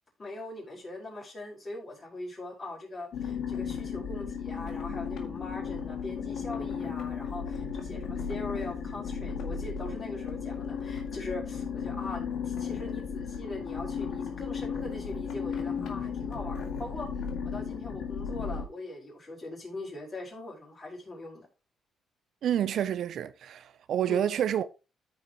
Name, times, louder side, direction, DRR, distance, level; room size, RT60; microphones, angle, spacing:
voice 1, 0.2-17.1 17.4-21.5 24.1-24.4, left 2 dB, 35° left, 4.8 m, -41 dB
sound 1, 3.1-18.6, left 6 dB, 75° left, 1.9 m, -35 dB
voice 2, 22.4-24.7, right 10 dB, 70° right, 0.5 m, -28 dB
14.0 x 5.1 x 3.0 m
cardioid pair, 90°, 0 cm